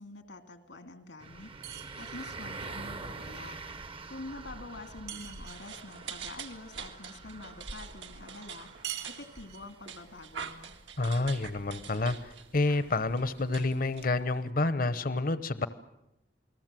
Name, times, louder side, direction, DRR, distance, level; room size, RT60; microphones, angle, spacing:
voice 1, 0.0-3.5 4.1-8.7 9.0-10.7, left 2 dB, 85° left, 8 dB, 2.4 m, -46 dB
sound 1, 1.2-14.2, right 3 dB, 30° right, 0.8 m, -47 dB
sound 2, 1.6-2.5 5.1-5.9 8.8-9.8, right 12 dB, 65° right, 3.1 m, -43 dB
sound 3, 5.5-14.5, right 6 dB, 85° right, 2.1 m, -45 dB
voice 2, 11.0-15.7, left 2 dB, 50° left, 13 dB, 0.9 m, -29 dB
29.0 x 20.0 x 7.7 m, 0.85 s
head